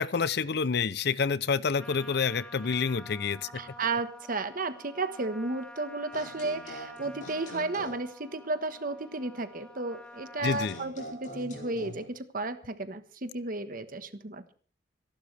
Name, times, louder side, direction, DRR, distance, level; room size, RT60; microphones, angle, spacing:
voice 1, 0.0-3.6 10.4-10.7, left 5 dB, 65° left, 0.6 m, -28 dB
Trumpet, 1.8-10.9, left 1 dB, 5° left, 1.7 m, -49 dB
voice 2, 3.5-14.5, right 3 dB, 50° right, 1.3 m, -33 dB
sound 1, 6.1-8.1 10.4-12.0, equal, 45° left, 5.7 m, -44 dB
26.5 x 11.5 x 3.4 m
head